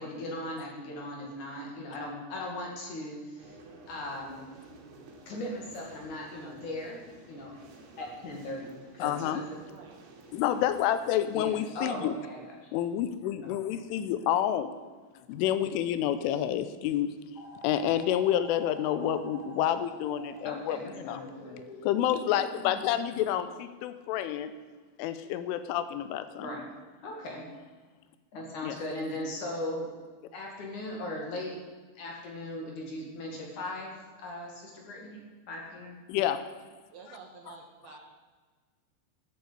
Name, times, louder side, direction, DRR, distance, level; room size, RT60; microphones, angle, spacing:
voice 1, 0.0-3.6 3.9-4.5 5.3-7.0 7.3-7.5 8.0-9.4 11.3-12.5 13.4-13.5 20.4-21.6 26.4-26.6 27.0-27.5 28.3-29.9 30.3-31.5 31.9-35.2 35.5-36.0, left 1 dB, 50° left, 0 dB, 3.1 m, -38 dB
sound 1, 3.4-11.4, right 2 dB, 90° right, 4.7 m, -53 dB
voice 2, 9.0-9.4 10.3-12.1 12.7-14.8 15.3-17.1 17.6-21.2 21.8-24.5 25.0-26.5 28.6-28.8 36.1-36.5, left 11 dB, 85° left, 12 dB, 3.1 m, -29 dB
voice 3, 9.7-10.0 36.9-38.0, right 5 dB, 65° right, 1 dB, 2.8 m, -49 dB
sound 2, 17.3-22.8, equal, 30° left, 2.0 m, -47 dB
13.5 x 8.2 x 8.1 m, 1.4 s
omnidirectional pair, 5.7 m